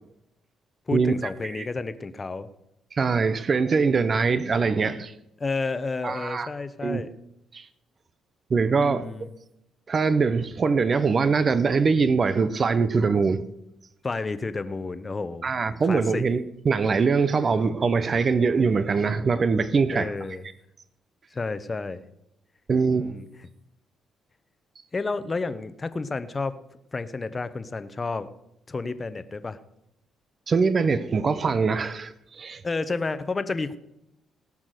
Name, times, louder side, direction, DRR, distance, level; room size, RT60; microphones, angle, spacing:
voice 1, 0.9-2.5 5.4-7.1 8.8-9.3 14.0-15.5 15.8-16.2 19.9-20.4 21.3-22.0 22.9-23.3 24.9-26.6 26.9-28.3 28.7-29.6 32.6-33.8, left 3 dB, 30° left, 0.9 m, -31 dB
voice 2, 2.9-5.1 6.0-6.5 6.8-7.1 7.5-7.7 8.5-9.0 9.9-13.4 15.4-20.1 22.7-23.1 30.5-32.6, right 5 dB, 40° right, 0.7 m, -23 dB
18.0 x 6.1 x 6.6 m
cardioid pair, 90°, 0 cm